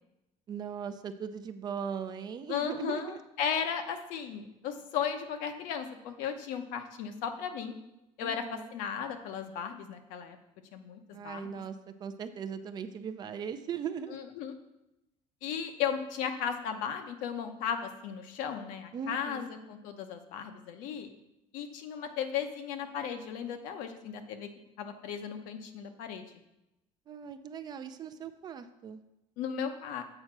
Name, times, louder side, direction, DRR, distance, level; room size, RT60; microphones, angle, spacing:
voice 1, 0.5-3.2 8.2-8.7 11.1-11.7 12.0-14.2 18.9-19.5 27.1-29.0, right 7 dB, 30° right, 9 dB, 0.4 m, -39 dB
voice 2, 2.5-7.7 8.2-10.4 10.7-11.6 14.1-14.5 15.4-21.1 21.5-24.5 24.8-26.2 29.4-30.0, left 7 dB, 75° left, 7 dB, 0.9 m, -35 dB
7.9 x 4.4 x 5.9 m, 0.91 s
cardioid pair, 155°, 14 cm